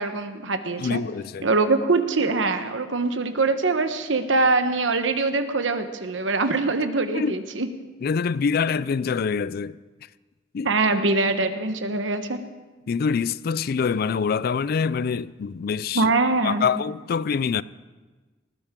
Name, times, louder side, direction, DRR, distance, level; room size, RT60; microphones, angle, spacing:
voice 1, 0.0-1.0 1.4-7.7 10.6-12.4 15.9-16.7, right 3 dB, 80° right, 1.1 m, -23 dB
voice 2, 0.8-1.5 7.1-7.4 8.0-9.8 10.5-10.7 12.9-16.1 16.4-17.6, left 6 dB, 55° left, 0.4 m, -25 dB
19.5 x 15.5 x 3.7 m
head